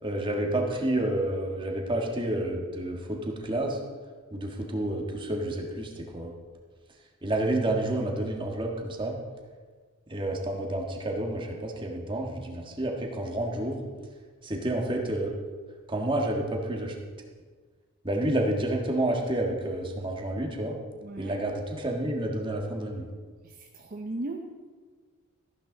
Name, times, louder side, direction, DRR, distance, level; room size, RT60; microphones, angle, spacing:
voice 1, 0.0-3.8 4.3-6.3 7.2-9.2 10.1-13.8 14.4-15.3 15.9-16.9 18.0-20.8 21.2-23.0, right 1 dB, 25° right, 0 dB, 1.6 m, -29 dB
voice 2, 21.0-21.4 23.4-24.4, right 2 dB, 40° right, 3 dB, 0.7 m, -37 dB
13.5 x 11.5 x 3.9 m, 1.5 s
head